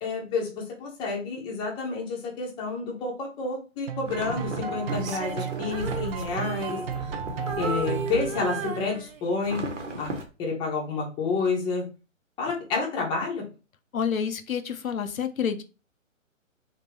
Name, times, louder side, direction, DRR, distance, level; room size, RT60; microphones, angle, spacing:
voice 1, 0.0-6.8 7.6-9.6 10.0-10.1 10.4-11.8 12.4-13.4, left 4 dB, 10° left, -1 dB, 0.8 m, -29 dB
sound 1, 3.9-9.1, right 7 dB, 45° right, 0.5 m, -35 dB
sound 2, 4.0-8.9 9.4-10.2, right 2 dB, 60° right, 1.1 m, -36 dB
Female singing, 4.9-7.2 7.5-9.5 10.0-10.3, right 4 dB, 80° right, 0.8 m, -35 dB
voice 2, 13.9-15.6, left 7 dB, 80° left, 8 dB, 0.7 m, -28 dB
3.6 x 2.8 x 2.9 m, 0.31 s
figure-of-eight pair, 130°, 40 cm